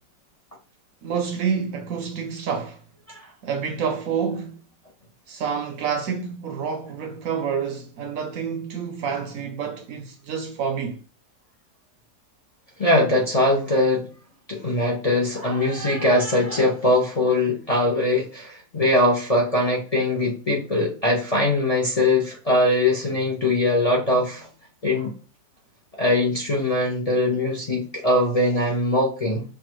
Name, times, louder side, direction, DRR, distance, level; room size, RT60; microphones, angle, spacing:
voice 1, 1.0-2.8 3.4-4.6 5.3-11.0, right 6 dB, 70° right, 0.8 m, -28 dB
voice 2, 12.8-14.1 14.5-24.5 24.8-25.1 26.0-29.4, left 1 dB, 70° left, 0.3 m, -21 dB
5.6 x 2.3 x 3.0 m
omnidirectional pair, 2.0 m